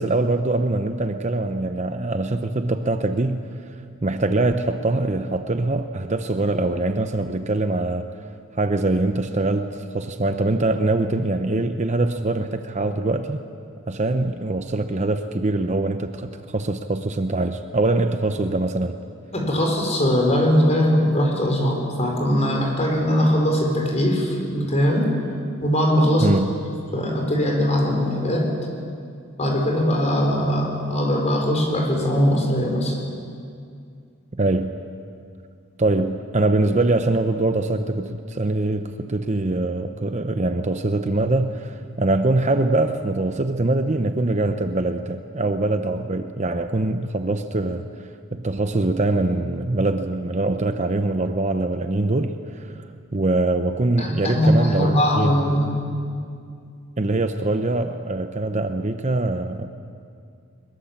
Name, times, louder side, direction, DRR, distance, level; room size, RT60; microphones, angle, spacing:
voice 1, 0.0-3.4 4.0-8.1 8.6-13.4 13.9-19.0 26.2-26.5 34.3-34.8 35.8-47.8 48.3-52.9 53.1-55.3 57.0-59.7, right 2 dB, 35° right, 8 dB, 0.8 m, -23 dB
voice 2, 19.3-25.1 25.6-26.3 26.9-28.5 29.4-33.0 54.0-55.7, equal, 35° left, 1 dB, 4.4 m, -20 dB
22.0 x 22.0 x 7.4 m, 2.3 s
head